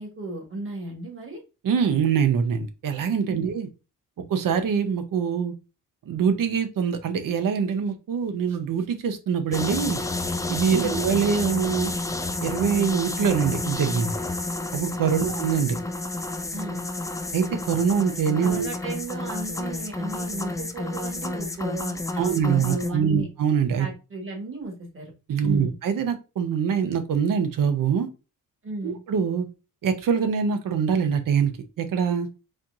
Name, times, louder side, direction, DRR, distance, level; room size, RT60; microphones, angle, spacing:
voice 1, 0.0-1.4 3.3-3.5 10.7-11.0 15.2-15.4 16.5-16.8 18.4-23.3 23.8-25.1 25.4-25.7 28.6-29.0, right 2 dB, 40° right, 0 dB, 1.6 m, -35 dB
voice 2, 1.6-3.7 4.3-5.5 6.1-10.0 10.5-11.9 12.4-14.1 14.7-15.8 17.3-18.7 22.2-23.9 25.3-28.1 28.8-29.5 29.8-31.5 31.8-32.3, right 7 dB, 70° right, 8 dB, 0.8 m, -24 dB
sound 1, 9.5-22.9, left 2 dB, 10° left, 0.3 m, -30 dB
4.2 x 3.0 x 2.6 m, 0.30 s
wide cardioid pair, 130°, 34 cm